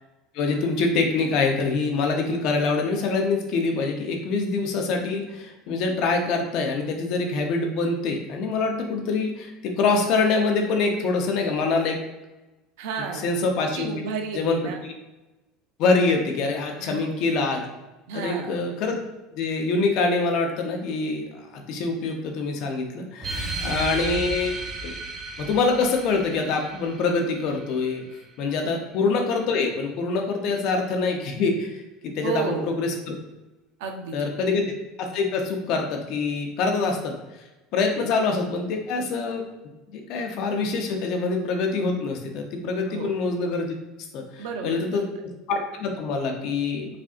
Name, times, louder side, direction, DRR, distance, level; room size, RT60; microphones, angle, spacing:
voice 1, 0.3-12.0 13.2-13.9 14.3-14.9 15.8-17.6 18.1-19.0 19.4-21.3 21.5-24.5 24.8-24.9 25.4-28.0 28.4-33.1 34.1-37.2 37.7-39.4 39.9-43.7 44.1-45.0 45.5-47.0, left 4 dB, 60° left, 3 dB, 0.8 m, -25 dB
voice 2, 12.8-13.3 13.7-14.8 16.8-17.2 18.1-18.6 23.4-23.9 28.6-28.8 30.4-30.5 32.2-32.7 33.8-34.3 37.9-38.1 42.9-43.1 44.4-45.1, right 5 dB, 80° right, 4 dB, 0.6 m, -32 dB
sound 1, 23.2-28.2, right 3 dB, 30° right, 0.7 m, -34 dB
5.0 x 2.6 x 2.5 m, 1.1 s
supercardioid pair, 105°, 0 cm